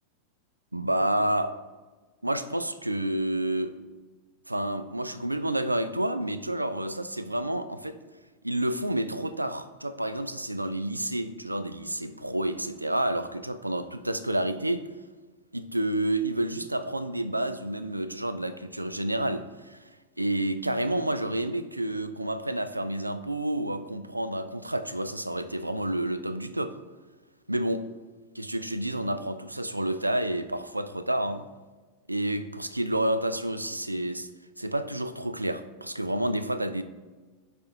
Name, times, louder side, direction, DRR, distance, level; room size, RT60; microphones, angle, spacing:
voice 1, 0.7-1.6 2.2-3.7 4.5-8.0 8.4-14.9 15.5-19.9 20.2-26.8 27.5-27.8 28.3-31.5 32.1-34.3 34.6-36.8, right 1 dB, 85° right, 0.3 m, -29 dB
11.5 x 4.1 x 2.7 m
figure-of-eight pair, 90°, 0 cm